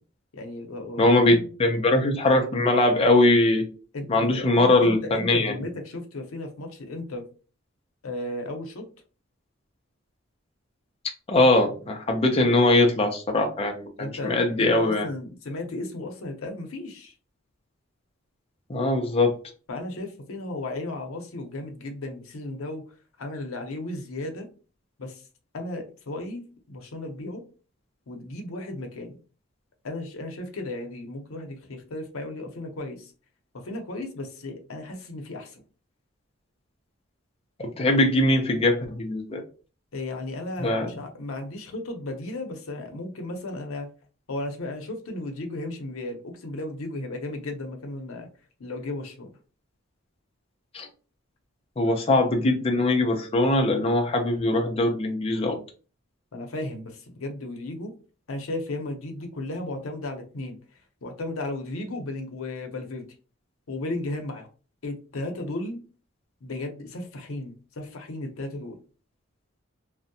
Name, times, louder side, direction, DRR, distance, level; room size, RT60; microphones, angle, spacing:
voice 1, 0.3-1.5 3.9-7.2 8.0-8.8 14.0-17.1 19.7-22.8 23.2-24.5 25.0-25.2 25.5-27.4 28.1-29.2 29.8-33.1 33.6-35.6 39.9-43.9 44.3-48.3 48.6-49.3 56.3-57.9 58.3-60.6 61.0-63.1 63.7-64.5 64.8-65.8 66.4-68.8, left 2 dB, 80° left, 4 dB, 0.6 m, -35 dB
voice 2, 1.0-3.7 4.1-5.5 11.3-15.1 18.7-19.3 37.6-39.4 40.6-40.9 50.7-50.9 51.8-55.6, left 2 dB, 30° left, 2 dB, 0.4 m, -21 dB
2.6 x 2.0 x 2.6 m, 0.36 s
head